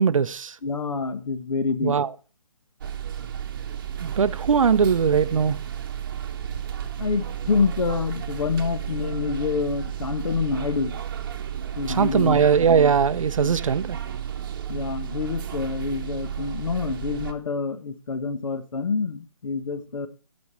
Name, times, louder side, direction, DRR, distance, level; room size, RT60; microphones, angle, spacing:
voice 1, 0.0-0.6 1.8-2.1 4.0-5.6 12.0-14.0, right 6 dB, 60° right, 0.6 m, -20 dB
voice 2, 0.6-2.0 7.0-11.0 11.8-12.4 13.4-13.5 14.7-20.1, left 5 dB, 60° left, 1.2 m, -27 dB
sound 1, 2.8-17.3, right 9 dB, 35° right, 1.0 m, -32 dB
14.0 x 5.4 x 4.4 m
hypercardioid pair, 160°, 19 cm